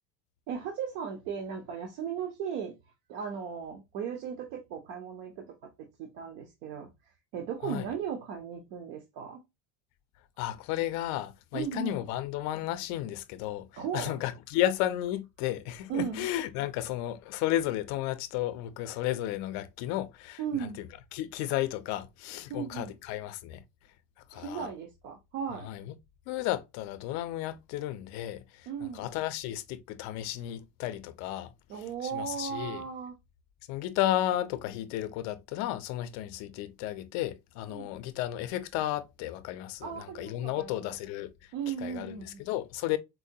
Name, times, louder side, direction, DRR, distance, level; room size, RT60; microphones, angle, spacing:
voice 1, 0.5-2.7 3.1-9.4 11.5-12.0 13.8-14.2 15.9-16.3 20.4-20.8 22.5-22.9 24.3-25.7 28.7-29.1 31.7-33.1 37.7-37.9 39.8-40.9 41.5-42.4, right 7 dB, 65° right, 0.9 m, -36 dB
voice 2, 10.4-13.7 13.9-20.4 21.1-23.6 24.3-24.7 25.6-26.0 26.3-31.5 32.1-32.8 33.7-41.3 41.8-43.0, left 13 dB, 50° left, 0.5 m, -33 dB
4.2 x 2.2 x 2.6 m
cardioid pair, 170°, 38 cm